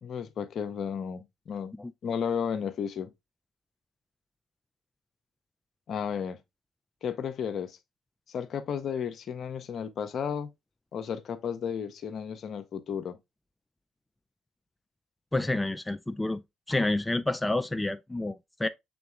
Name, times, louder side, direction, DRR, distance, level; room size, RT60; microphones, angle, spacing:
voice 1, 0.0-1.8 2.0-3.1 5.9-6.4 7.0-7.8 8.3-10.5 10.9-13.2, left 7 dB, 55° left, 0.6 m, -33 dB
voice 2, 15.3-16.4 16.7-18.7, left 2 dB, 15° left, 0.3 m, -29 dB
6.1 x 3.7 x 2.2 m
hypercardioid pair, 50°, 0 cm